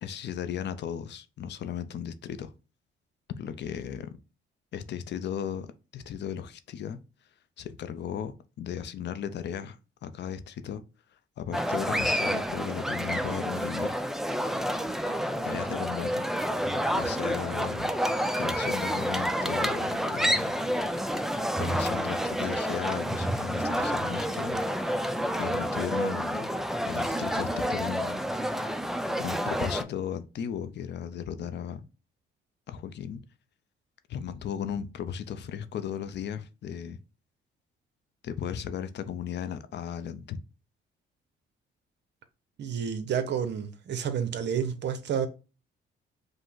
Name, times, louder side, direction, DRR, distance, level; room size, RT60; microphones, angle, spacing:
voice 1, 0.0-2.5 3.4-4.1 4.7-5.7 5.9-7.0 7.6-8.3 8.6-10.8 11.4-13.9 15.4-16.2 16.9-17.9 18.4-20.5 21.6-24.6 25.4-26.5 26.9-28.2 29.2-31.9 32.7-33.2 34.1-37.0 38.2-40.4, left 8 dB, 60° left, 0.6 m, -36 dB
sound 1, 11.5-29.8, equal, ahead, 0.4 m, -29 dB
voice 2, 42.6-45.3, right 7 dB, 60° right, 0.8 m, -30 dB
5.1 x 2.1 x 3.8 m
cardioid pair, 90°, 20 cm